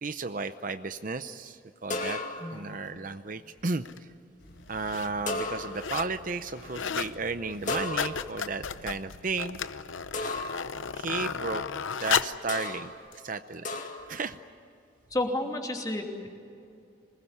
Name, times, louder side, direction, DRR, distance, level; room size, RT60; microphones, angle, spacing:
voice 1, 0.0-2.2 2.5-4.1 4.7-9.6 10.9-11.6 12.0-12.9 13.2-13.7 14.1-14.4, right 4 dB, 40° right, 10 dB, 0.7 m, -34 dB
sound 1, 1.9-2.6 5.3-6.0 7.7-8.4 10.1-10.7 12.5-13.0 13.6-14.2, left 2 dB, 40° left, 2.3 m, -34 dB
sound 2, 3.9-4.0 4.7-5.1 5.5-6.2 6.5-7.2 7.5-12.5 13.1-13.2, left 7 dB, 75° left, 0.8 m, -33 dB
sound 3, 4.4-9.4, equal, 55° left, 4.7 m, -52 dB
voice 2, 15.1-16.3, left 1 dB, 20° left, 2 dB, 2.8 m, -31 dB
27.0 x 20.5 x 9.8 m, 2.5 s
head